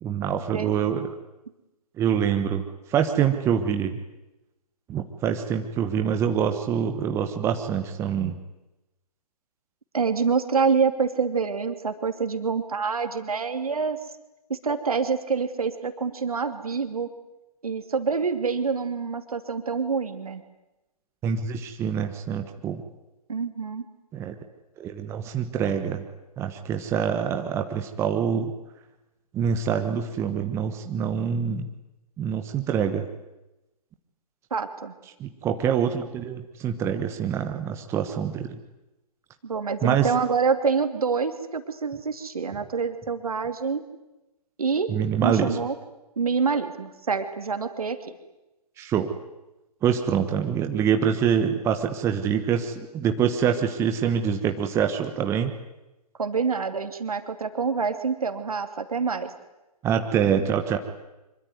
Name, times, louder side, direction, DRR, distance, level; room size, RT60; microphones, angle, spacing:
voice 1, 0.0-1.1 2.0-2.6 2.9-4.0 4.9-8.4 21.2-22.8 24.1-24.4 24.8-26.0 26.4-28.5 29.3-31.7 32.2-33.1 35.2-38.6 39.8-40.1 44.9-45.6 48.8-49.1 49.8-55.5 59.8-60.8, right 8 dB, 15° right, 6 dB, 1.3 m, -25 dB
voice 2, 9.9-14.0 14.5-17.1 17.6-20.4 23.3-23.8 34.5-34.9 39.4-43.8 44.6-44.9 45.2-45.7 46.2-48.0 56.2-59.3, right 5 dB, 65° right, 8 dB, 2.8 m, -26 dB
25.5 x 24.0 x 9.5 m, 0.98 s
figure-of-eight pair, 130°, 20 cm